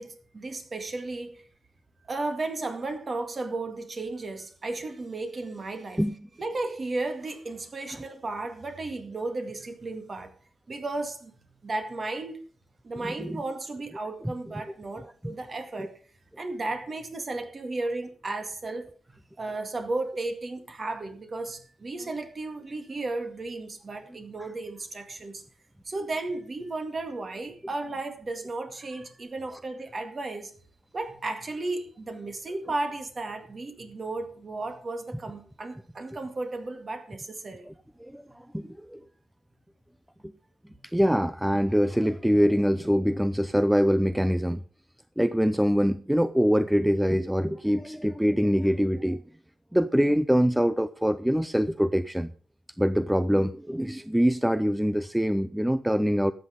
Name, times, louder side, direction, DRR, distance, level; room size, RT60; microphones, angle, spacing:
voice 1, 0.0-1.4 2.0-6.0 6.4-10.3 10.7-11.3 11.6-12.4 12.8-16.0 16.4-18.9 19.4-25.4 25.8-30.5 30.9-37.7 40.7-40.8, right 2 dB, 35° right, 2.1 m, -34 dB
voice 2, 40.9-44.6 45.2-49.2 49.7-52.3 52.8-56.3, equal, 5° right, 0.4 m, -24 dB
13.0 x 8.3 x 5.3 m
wide cardioid pair, 130°, 0 cm